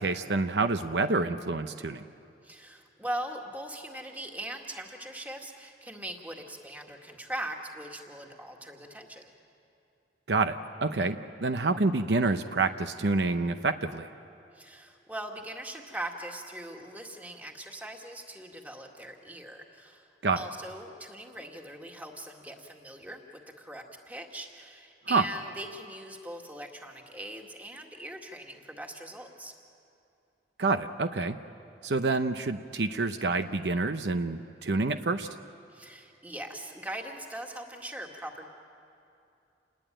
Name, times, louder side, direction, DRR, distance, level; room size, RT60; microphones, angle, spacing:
voice 1, 0.0-2.0 10.3-14.1 20.2-20.4 25.1-25.2 30.6-31.4 31.8-35.3, right 3 dB, 70° right, 9 dB, 0.7 m, -28 dB
voice 2, 2.4-9.3 14.5-20.1 20.3-23.2 23.6-29.5 35.7-38.5, right 1 dB, 10° right, 2 dB, 2.0 m, -41 dB
28.0 x 20.0 x 9.0 m, 2.6 s
head